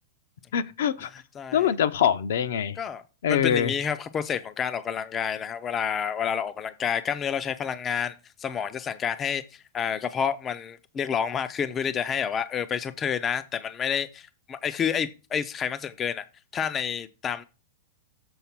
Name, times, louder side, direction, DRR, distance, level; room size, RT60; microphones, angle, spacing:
voice 1, 0.5-1.1 1.5-2.8 3.2-3.7, left 9 dB, 70° left, 0.6 m, -24 dB
voice 2, 1.4-1.7 2.8-3.0 3.3-16.2 16.5-17.4, left 7 dB, 15° left, 0.3 m, -29 dB
7.0 x 4.0 x 5.8 m
supercardioid pair, 165°, 0 cm